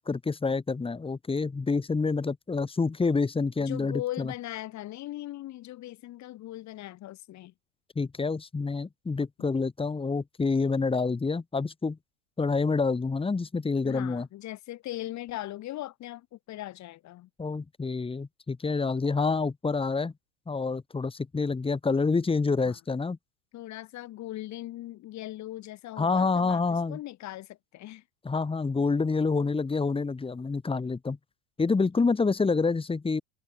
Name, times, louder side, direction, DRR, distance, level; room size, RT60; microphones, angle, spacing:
voice 1, 0.0-4.3 7.9-12.0 12.4-14.3 17.4-20.1 20.5-23.2 26.0-27.0 28.2-31.2 31.6-33.2, left 4 dB, 15° left, 3.2 m, -27 dB
voice 2, 3.6-7.5 13.8-17.3 22.6-22.8 23.5-28.0, left 15 dB, 40° left, 3.0 m, -39 dB
hypercardioid pair, 105°, 41 cm